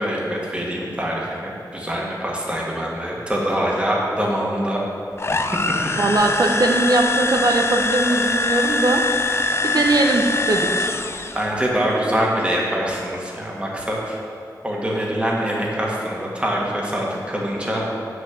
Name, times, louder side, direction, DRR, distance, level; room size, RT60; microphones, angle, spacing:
voice 1, 0.0-4.8 5.3-5.4 11.3-14.2 14.6-17.9, equal, 15° right, -3 dB, 1.7 m, -24 dB
sound 1, 5.2-11.5, left 3 dB, 35° left, 0.5 m, -23 dB
voice 2, 6.0-9.1 9.6-10.9, right 2 dB, 65° right, 3 dB, 0.9 m, -20 dB
8.2 x 6.3 x 6.5 m, 2.5 s
wide cardioid pair, 85°, 7 cm